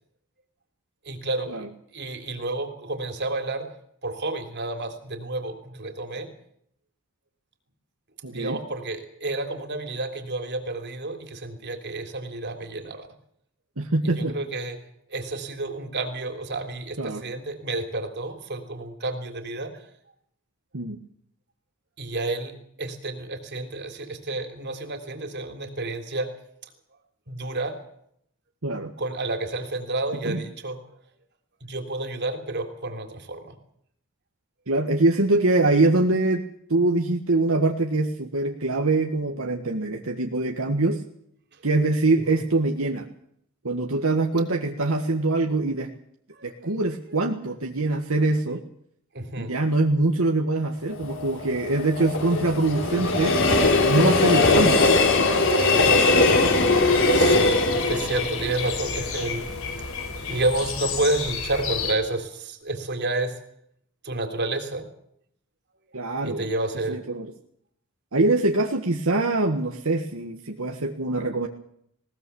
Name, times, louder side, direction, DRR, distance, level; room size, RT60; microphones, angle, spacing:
voice 1, 1.1-3.7 4.0-6.3 8.3-13.1 14.0-14.8 15.1-19.9 22.0-26.3 27.3-27.8 29.0-30.8 31.6-33.5 42.3-42.4 46.3-46.7 48.5-48.6 49.1-49.6 55.6-55.7 57.1-59.5 60.3-63.4 64.0-64.9 66.2-67.0, right 2 dB, 55° right, 6 dB, 3.4 m, -30 dB
voice 2, 8.2-8.6 13.8-14.3 17.0-17.2 20.7-21.0 28.6-28.9 30.3-30.4 34.7-36.4 36.7-41.0 41.6-43.1 43.6-45.9 46.4-48.6 49.4-53.4 53.8-56.5 65.9-66.4 66.9-67.3 68.1-71.5, right 2 dB, 80° right, 3 dB, 1.7 m, -24 dB
Train, 50.9-60.0 60.4-60.5, left 2 dB, 65° left, 4.3 m, -21 dB
sound 1, 56.4-61.9, left 6 dB, 85° left, 4.2 m, -32 dB
20.5 x 18.5 x 7.1 m, 0.69 s
head